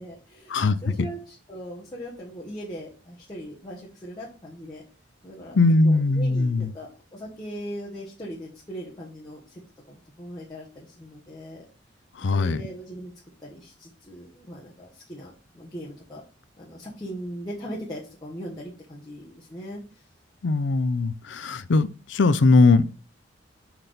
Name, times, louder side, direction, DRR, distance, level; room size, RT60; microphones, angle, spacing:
voice 1, 0.0-4.8 5.2-5.6 5.8-9.6 9.9-11.6 12.2-13.1 13.4-16.2 16.6-19.8, equal, 20° left, 1.4 m, -39 dB
voice 2, 5.5-6.7 12.2-12.6 20.4-23.1, left 3 dB, 70° left, 0.5 m, -20 dB
5.9 x 4.2 x 5.1 m
head